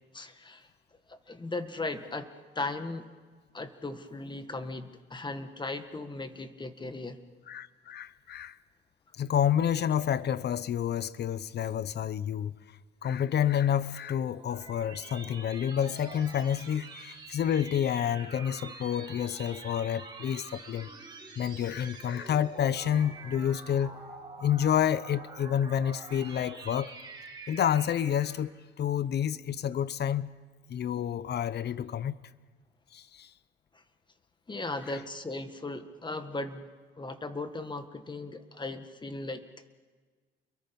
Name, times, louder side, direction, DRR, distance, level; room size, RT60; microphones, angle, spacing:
voice 1, 0.1-0.7 1.1-2.3 2.6-3.1 3.5-7.2 33.7-33.8 34.5-36.7 37.0-39.4, left 2 dB, 25° left, 1.8 m, -37 dB
voice 2, 7.5-8.6 9.1-12.5 13.0-20.9 21.4-24.0 24.4-26.9 27.5-30.3 30.7-32.1 32.9-33.3, left 9 dB, 55° left, 0.8 m, -29 dB
sound 1, 13.9-28.5, right 3 dB, 25° right, 5.9 m, -47 dB
29.5 x 22.5 x 5.4 m
cardioid pair, 90°, 20 cm